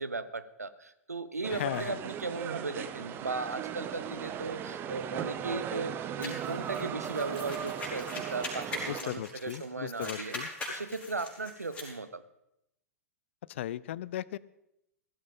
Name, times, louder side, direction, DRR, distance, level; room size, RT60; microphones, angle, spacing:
voice 1, 0.0-10.4 10.7-12.2, right 3 dB, 80° right, 14 dB, 0.8 m, -37 dB
sound 1, 1.4-9.0, right 9 dB, 25° right, 0.8 m, -37 dB
voice 2, 1.6-2.0 8.9-10.5 13.5-14.4, left 13 dB, 50° left, 21 dB, 0.4 m, -36 dB
sound 2, 6.2-9.6 9.9-11.9, left 2 dB, 15° left, 4.5 m, -41 dB
16.0 x 14.0 x 3.7 m, 0.83 s
figure-of-eight pair, 105°, 8 cm